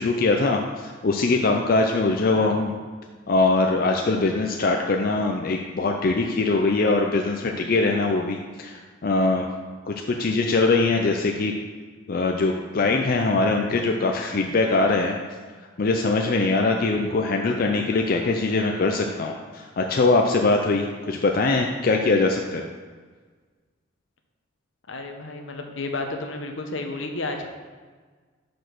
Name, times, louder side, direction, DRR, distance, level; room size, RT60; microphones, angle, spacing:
voice 1, 0.0-2.8 3.3-9.5 9.9-11.5 12.1-15.2 15.8-22.6, left 3 dB, 45° left, 2 dB, 0.4 m, -22 dB
voice 2, 24.9-27.5, left 2 dB, 75° left, 4 dB, 0.9 m, -32 dB
5.9 x 5.2 x 6.0 m, 1.5 s
head